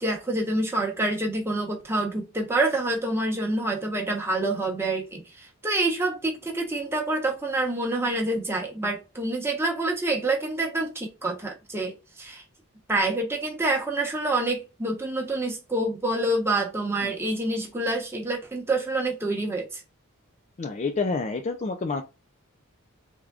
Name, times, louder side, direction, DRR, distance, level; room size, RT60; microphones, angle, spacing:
voice 1, 0.0-11.9 12.2-12.4 12.9-19.8, right 2 dB, 10° right, 0.9 m, -27 dB
voice 2, 20.6-22.0, left 4 dB, 30° left, 0.4 m, -28 dB
3.5 x 3.4 x 2.3 m
head